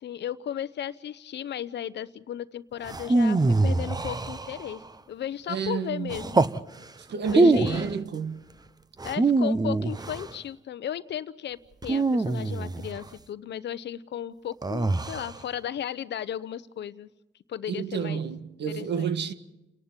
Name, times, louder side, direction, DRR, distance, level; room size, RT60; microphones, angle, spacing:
voice 1, 0.0-4.8 5.1-6.5 7.3-7.9 9.0-17.1 17.5-18.2 18.7-19.1, left 10 dB, 60° left, 0.8 m, -35 dB
sound 1, 2.9-4.9 6.1-6.6 7.2-7.9 9.0-10.3 11.8-13.0 14.6-15.4, right 2 dB, 20° right, 0.9 m, -24 dB
voice 2, 5.5-6.2 7.1-8.4 17.7-19.3, right 6 dB, 60° right, 1.5 m, -30 dB
29.5 x 11.0 x 8.9 m
cardioid pair, 90°, 20 cm